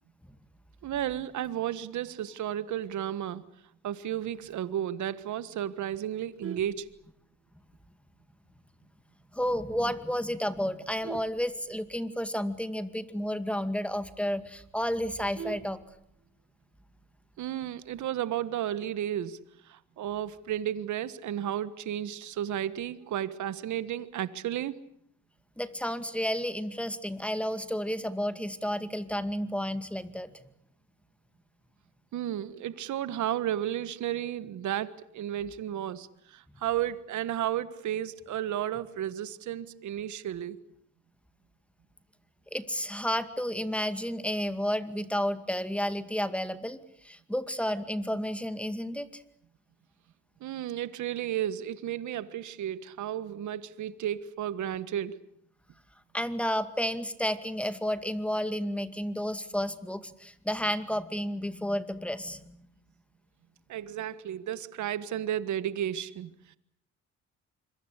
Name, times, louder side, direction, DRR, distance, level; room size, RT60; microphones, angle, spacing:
voice 1, 0.8-3.4 3.8-6.9 17.4-19.4 19.6-24.8 32.1-40.6 50.4-55.2 63.7-66.6, right 11 dB, 75° right, 15 dB, 1.5 m, -33 dB
Vehicle horn car horn honking, 6.1-7.6 8.1-8.3 8.6-8.7 9.1-9.2 9.5-9.9 10.5-12.3 12.7-12.8 13.0-13.1 13.5-13.6 14.0-14.1 14.4-16.4 17.6-18.0, right 7 dB, 50° right, 1.5 m, -44 dB
voice 2, 9.3-15.8 25.6-30.4 42.5-49.2 56.1-62.7, equal, 5° left, 11 dB, 2.2 m, -31 dB
26.5 x 23.0 x 8.3 m, 0.68 s
cardioid pair, 90°, 30 cm